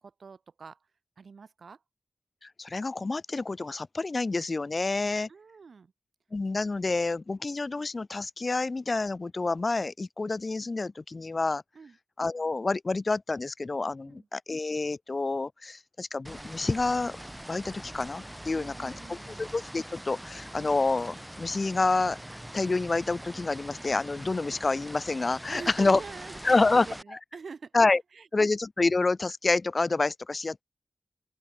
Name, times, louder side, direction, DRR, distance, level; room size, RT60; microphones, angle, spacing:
voice 1, 0.0-0.8 1.2-1.8 5.3-5.9 11.7-12.0 14.0-14.3 18.5-19.4 25.5-27.7 28.1-28.6, right 5 dB, 75° right, 1.2 m, -45 dB
voice 2, 2.4-5.3 6.3-11.6 12.2-17.2 17.5-22.2 22.5-26.0 26.4-26.9 27.7-28.0 28.3-30.6, left 3 dB, 50° left, 0.3 m, -28 dB
sound 1, 16.2-27.0, equal, 10° right, 0.7 m, -43 dB
open air
cardioid pair, 40°, 0 cm